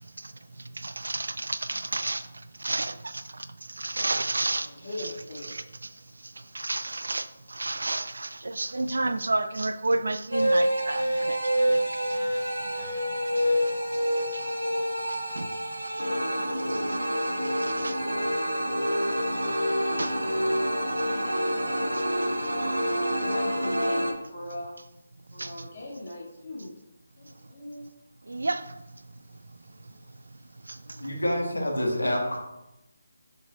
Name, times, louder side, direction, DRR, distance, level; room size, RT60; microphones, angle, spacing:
voice 1, 0.8-2.3 2.6-5.9 6.5-12.2 13.4-13.5 14.2-14.5 15.1-15.5 16.7-17.0 17.4-17.9 20.0-20.2 25.4-25.7 28.3-28.7 30.7-30.8, right 2 dB, 65° right, 0.4 m, -31 dB
voice 2, 4.6-5.6 13.2-13.4 15.0-15.2 16.6-16.9 23.1-24.8 25.3-26.7 27.2-27.9 30.8-31.3, left 1 dB, 40° left, 2.0 m, -40 dB
sound 1, 10.3-24.1, equal, 80° right, 0.9 m, -27 dB
voice 3, 31.0-32.4, equal, 80° left, 1.5 m, -27 dB
6.8 x 5.9 x 2.3 m
figure-of-eight pair, 150°, 0 cm